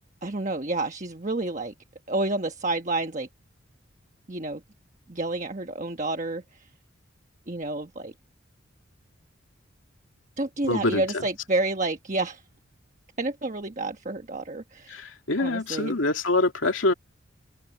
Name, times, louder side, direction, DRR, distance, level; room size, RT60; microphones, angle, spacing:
voice 1, 0.2-1.7 2.1-3.3 4.3-4.6 5.1-6.7 7.5-8.1 10.4-12.4 13.2-15.1 15.4-16.0, right 2 dB, 35° right, 1.2 m, -29 dB
voice 2, 10.7-11.2 14.9-16.9, left 2 dB, 75° left, 2.4 m, -25 dB
open air
head